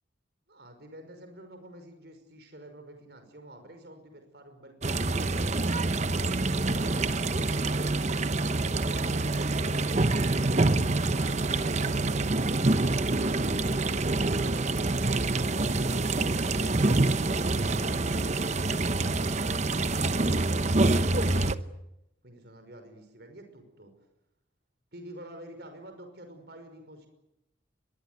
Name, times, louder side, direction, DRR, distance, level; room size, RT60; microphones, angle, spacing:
voice 1, 0.5-5.6 6.7-7.0 7.9-9.9 11.5-13.2 22.2-23.9 24.9-27.1, right 1 dB, 55° right, 7 dB, 5.6 m, -48 dB
sound 1, 4.8-21.6, right 2 dB, 35° right, 0.9 m, -26 dB
23.5 x 22.0 x 9.5 m, 0.87 s
head